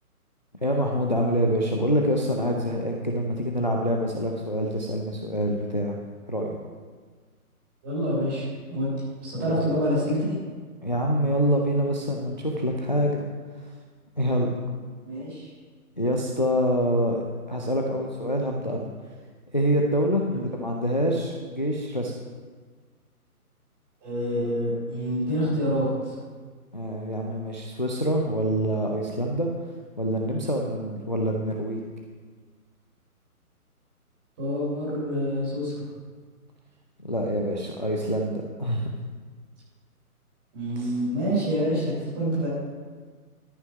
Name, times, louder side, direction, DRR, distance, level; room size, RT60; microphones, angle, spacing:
voice 1, 0.6-6.0 6.3-6.5 9.5-9.6 10.8-13.2 14.2-14.8 16.0-18.9 19.5-22.1 26.7-29.5 30.0-31.8 37.0-38.9 40.8-40.9, equal, 30° left, 1 dB, 0.5 m, -26 dB
voice 2, 7.8-8.9 9.2-10.3 15.0-15.5 20.3-20.5 24.0-26.1 34.4-35.8 40.5-42.5, equal, 15° right, -8 dB, 3.6 m, -27 dB
13.0 x 5.9 x 5.7 m, 1.5 s
hypercardioid pair, 175°, 45 cm